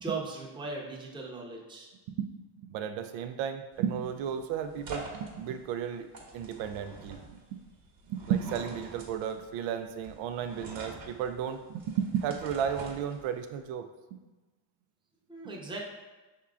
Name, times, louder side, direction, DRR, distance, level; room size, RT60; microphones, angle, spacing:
voice 1, 0.0-1.9 15.3-15.8, right 3 dB, 10° right, -2 dB, 0.8 m, -38 dB
voice 2, 2.6-6.1 6.3-7.2 7.5-7.6 8.1-13.9, right 8 dB, 70° right, 8 dB, 0.6 m, -33 dB
sound 1, 3.7-13.6, right 2 dB, 45° right, 1.1 m, -47 dB
5.5 x 3.7 x 2.4 m, 1.2 s
supercardioid pair, 85°, 48 cm